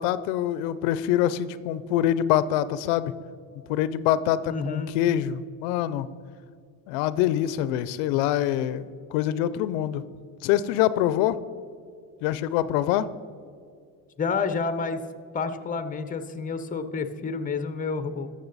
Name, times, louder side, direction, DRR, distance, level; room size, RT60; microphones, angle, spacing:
voice 1, 0.0-3.1 3.7-6.1 6.9-10.0 10.4-11.4 12.2-13.1, left 12 dB, 90° left, 16 dB, 0.5 m, -25 dB
voice 2, 4.5-4.9 14.2-15.0 15.3-18.3, left 5 dB, 20° left, 10 dB, 0.7 m, -29 dB
13.0 x 6.6 x 4.0 m, 2.3 s
cardioid pair, 110°, 40 cm